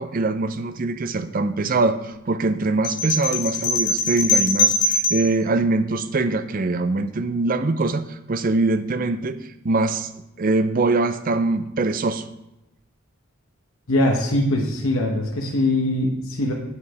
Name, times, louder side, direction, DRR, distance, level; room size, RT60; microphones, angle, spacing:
voice 1, 0.0-9.4 9.6-10.1 10.4-12.2, right 3 dB, 40° right, 11 dB, 0.5 m, -23 dB
sound 1, 2.8-5.3, left 2 dB, 35° left, 1.3 m, -21 dB
voice 2, 13.9-16.5, left 1 dB, 70° left, -1 dB, 1.0 m, -22 dB
8.3 x 5.1 x 4.7 m, 0.90 s
head